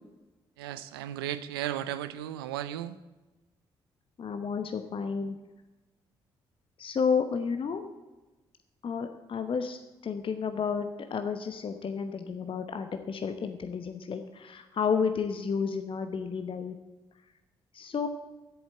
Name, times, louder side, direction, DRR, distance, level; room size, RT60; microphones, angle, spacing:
voice 1, 0.6-3.0, right 12 dB, 80° right, 14 dB, 0.6 m, -35 dB
voice 2, 4.2-5.4 6.8-7.9 8.8-16.8 17.7-18.1, left 6 dB, 45° left, 8 dB, 1.0 m, -31 dB
10.5 x 8.3 x 7.7 m, 1.1 s
hypercardioid pair, 40°, 12 cm